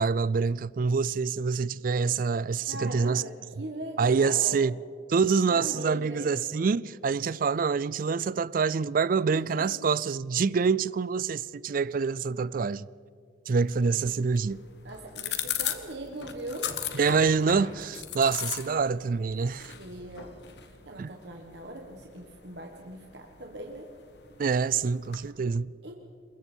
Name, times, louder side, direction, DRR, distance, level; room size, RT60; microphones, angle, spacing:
voice 1, 0.0-3.2 4.0-4.8 5.1-12.9 13.5-14.6 16.9-19.7 21.0-21.1 24.4-25.7, right 5 dB, 50° right, 0.4 m, -26 dB
voice 2, 2.7-4.6 5.5-6.3 9.3-9.9 14.8-16.7 18.7-18.8 19.8-20.3 20.6-23.9 25.8-25.9, right 1 dB, 70° right, 1.6 m, -40 dB
sound 1, 13.7-25.3, left 10 dB, 70° left, 1.5 m, -39 dB
Hammer, 14.8-21.7, left 2 dB, 85° left, 2.1 m, -46 dB
27.0 x 22.0 x 4.5 m
head